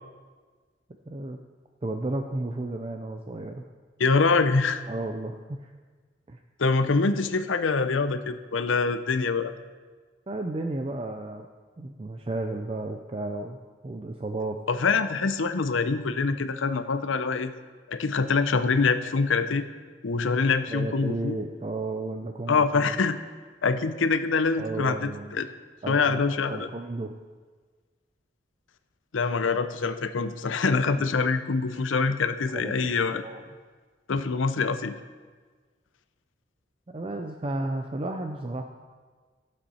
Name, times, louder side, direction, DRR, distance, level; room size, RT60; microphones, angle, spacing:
voice 1, 1.1-1.4 1.8-3.7 4.9-5.7 6.3-6.4 10.3-11.5 11.8-13.6 13.8-14.6 20.7-22.9 24.6-25.3 25.8-26.2 26.5-27.1 30.7-31.1 32.5-33.4 36.9-38.6, right 2 dB, 30° right, 5 dB, 0.4 m, -33 dB
voice 2, 4.0-4.8 6.6-9.5 14.7-17.5 17.9-19.6 20.0-21.4 22.5-23.2 23.6-25.5 25.9-26.7 29.1-33.2 34.1-35.0, left 4 dB, 85° left, 10 dB, 0.6 m, -25 dB
14.0 x 7.4 x 4.3 m, 1.5 s
head